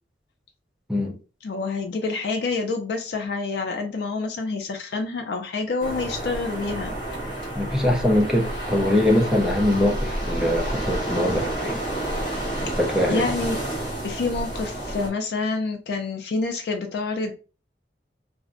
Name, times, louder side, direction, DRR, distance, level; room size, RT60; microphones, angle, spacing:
voice 1, 1.4-6.9 13.1-13.6 14.0-17.3, left 3 dB, 70° left, 0.4 m, -27 dB
sound 1, 5.8-15.1, right 1 dB, 30° left, 1.2 m, -30 dB
voice 2, 7.5-11.8 12.6-13.2, left 1 dB, 5° right, 0.4 m, -22 dB
2.5 x 2.0 x 2.4 m
head